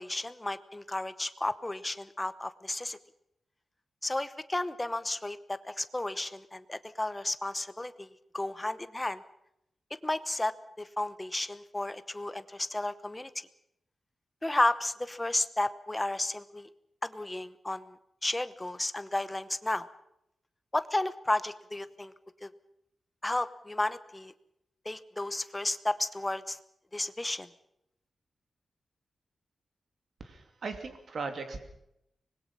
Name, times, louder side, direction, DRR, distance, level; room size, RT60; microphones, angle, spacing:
voice 1, 0.0-3.0 4.0-8.1 8.3-9.2 10.0-13.3 14.4-16.7 17.0-18.0 18.2-19.9 20.7-22.1 22.4-22.5 23.2-24.3 24.8-26.6 26.9-27.5, left 1 dB, 15° left, 14 dB, 1.0 m, -33 dB
voice 2, 30.2-31.6, right 4 dB, 60° right, 7 dB, 2.8 m, -38 dB
25.0 x 20.5 x 5.6 m, 0.79 s
wide cardioid pair, 135°, 0 cm